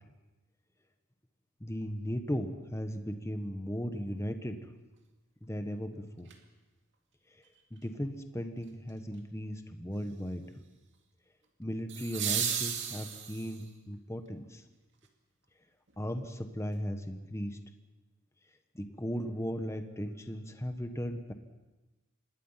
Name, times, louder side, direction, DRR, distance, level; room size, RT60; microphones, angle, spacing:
voice 1, 1.6-4.7 5.4-6.3 7.7-10.4 11.6-14.6 16.0-17.6 18.7-21.3, equal, 15° left, 7 dB, 1.4 m, -37 dB
sound 1, 6.3-6.4 11.9-13.7 15.9-16.0, right 8 dB, 60° right, 2.4 m, -34 dB
26.5 x 20.5 x 5.9 m, 1.1 s
head